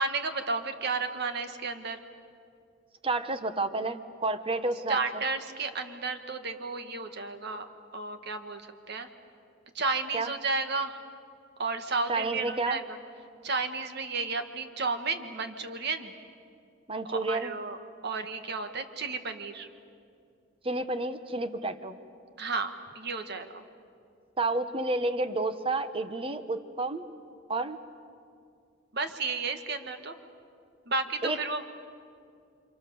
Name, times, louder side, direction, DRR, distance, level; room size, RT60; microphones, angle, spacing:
voice 1, 0.0-2.0 4.9-7.7 7.9-9.1 9.8-11.0 11.6-13.0 13.4-16.1 17.1-17.8 18.0-19.7 22.4-23.6 28.9-30.2 30.9-31.7, right 3 dB, 55° right, 7 dB, 1.7 m, -32 dB
voice 2, 3.0-5.0 10.1-10.3 12.1-12.8 16.9-17.5 20.6-22.0 24.4-27.0 27.5-27.8 31.2-31.4, right 2 dB, 30° right, 10 dB, 1.1 m, -30 dB
30.0 x 26.5 x 7.1 m, 2.4 s
head